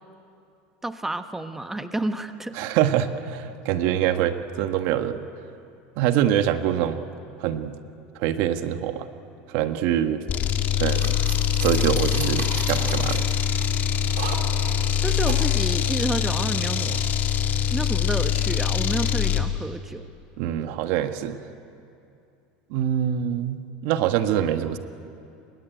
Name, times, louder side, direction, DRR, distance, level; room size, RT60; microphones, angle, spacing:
voice 1, 0.8-2.6 15.0-17.1 17.7-20.0 24.4-24.5, right 2 dB, 5° right, 9 dB, 1.3 m, -30 dB
voice 2, 2.5-5.2 6.0-7.0 7.4-7.8 8.1-9.1 9.5-10.2 10.8-11.2 11.6-13.3 20.4-21.4 22.7-24.8, right 10 dB, 65° right, 9 dB, 1.4 m, -24 dB
sound 1, 10.3-19.5, left 9 dB, 40° left, 2.0 m, -23 dB
sound 2, 10.8-15.5, right 7 dB, 80° right, 3.3 m, -37 dB
25.5 x 23.0 x 9.2 m, 2.6 s
supercardioid pair, 110°, 4 cm